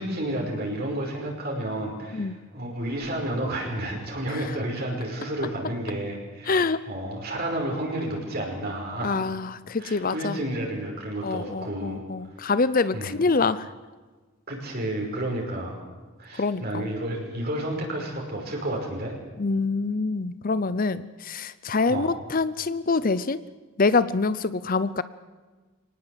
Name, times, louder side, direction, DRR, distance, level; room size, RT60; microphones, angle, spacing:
voice 1, 0.0-9.2 9.8-12.0 12.4-12.5 12.9-13.2 14.5-15.8 16.2-19.1 21.9-22.1, right 1 dB, 45° right, -1 dB, 5.4 m, -31 dB
voice 2, 6.5-6.8 9.0-10.4 11.2-13.7 16.3-16.9 19.4-23.4 23.8-25.0, left 4 dB, 40° left, 15 dB, 0.6 m, -25 dB
24.0 x 19.0 x 8.0 m, 1.3 s
head